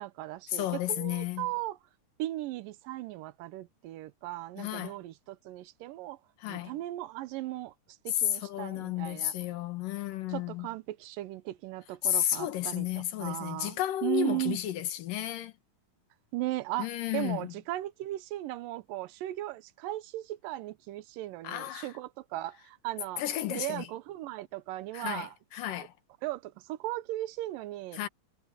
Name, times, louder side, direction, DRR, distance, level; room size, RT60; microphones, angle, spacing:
voice 1, 0.0-1.8 2.2-6.2 6.5-7.7 8.1-9.3 10.3-14.6 16.3-23.2 23.5-25.3 26.2-28.0, right 16 dB, 85° right, 2.5 m, -37 dB
voice 2, 0.5-1.5 4.6-5.0 6.4-6.7 8.1-10.7 12.0-15.5 16.8-17.5 21.4-21.9 23.2-23.9 24.9-25.9 27.9-28.1, left 12 dB, 80° left, 3.0 m, -32 dB
omnidirectional pair, 3.9 m